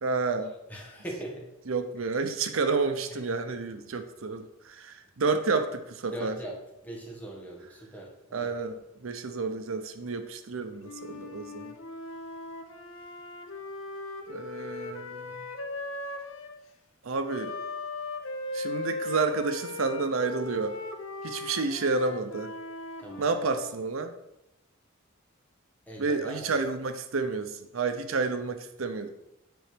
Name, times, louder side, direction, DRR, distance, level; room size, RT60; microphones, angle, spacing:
voice 1, 0.0-0.5 1.7-6.4 8.3-11.7 14.3-15.4 17.0-17.5 18.5-20.8 21.2-22.5 23.2-24.1 26.0-29.1, right 4 dB, 85° right, 8 dB, 0.7 m, -30 dB
voice 2, 0.7-1.5 3.1-3.2 6.1-6.6 6.8-8.5 23.0-23.3 25.9-26.7, right 1 dB, 10° left, -1 dB, 1.7 m, -40 dB
Wind instrument woodwind instrument, 10.8-16.6 17.3-23.8, left 3 dB, 80° left, 0.9 m, -38 dB
9.4 x 4.4 x 5.1 m, 0.87 s
head